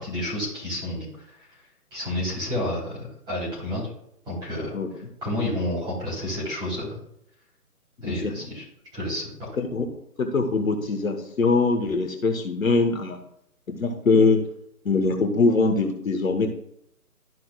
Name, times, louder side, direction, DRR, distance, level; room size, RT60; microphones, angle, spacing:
voice 1, 0.0-1.5 1.9-3.9 4.2-4.8 5.2-7.0 8.0-8.6 8.9-9.6, left 1 dB, 10° right, -7 dB, 3.3 m, -30 dB
voice 2, 8.0-8.3 9.6-9.9 10.2-13.2 13.7-14.4 14.8-16.5, left 3 dB, 60° left, 5 dB, 1.3 m, -22 dB
12.5 x 5.7 x 2.3 m, 0.72 s
figure-of-eight pair, 150°, 47 cm